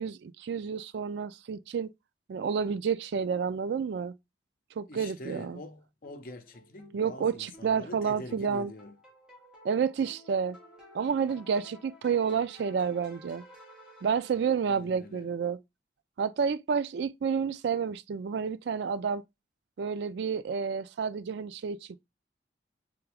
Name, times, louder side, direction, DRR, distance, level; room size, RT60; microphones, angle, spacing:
voice 1, 0.0-1.9 2.3-4.1 4.8-5.6 6.9-8.7 9.6-10.6 10.9-13.4 14.0-15.6 16.2-19.2 19.8-22.0, right 6 dB, 65° right, 0.3 m, -30 dB
voice 2, 4.9-9.0 14.7-15.3, left 2 dB, 50° left, 0.6 m, -45 dB
sound 1, 6.0-14.9, equal, 5° right, 1.6 m, -54 dB
3.9 x 3.5 x 3.4 m
head